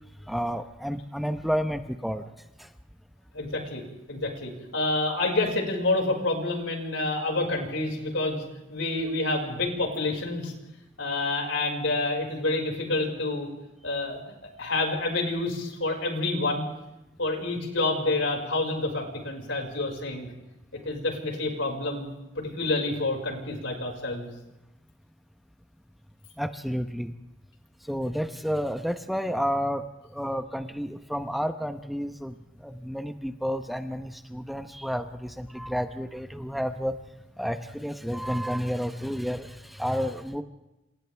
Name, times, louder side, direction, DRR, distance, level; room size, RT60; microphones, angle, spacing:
voice 1, 0.3-2.2 26.4-27.1 27.9-29.8 30.1-32.3 32.6-36.9 37.4-40.4, equal, ahead, 7 dB, 1.0 m, -30 dB
voice 2, 3.3-3.8 4.1-8.4 8.7-10.5 11.0-13.5 13.8-14.2 14.6-16.7 17.2-20.3 20.8-24.3, left 2 dB, 75° left, 1 dB, 5.8 m, -28 dB
28.0 x 27.5 x 3.5 m, 0.97 s
head